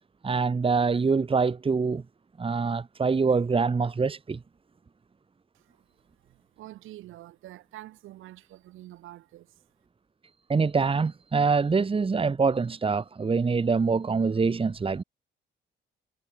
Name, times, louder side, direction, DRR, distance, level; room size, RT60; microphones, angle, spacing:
voice 1, 0.2-2.0 2.4-4.4 10.5-15.0, right 4 dB, 25° right, 1.5 m, -25 dB
voice 2, 6.2-9.5, right 15 dB, 90° right, 4.4 m, -47 dB
cardioid pair, 90°, 20 cm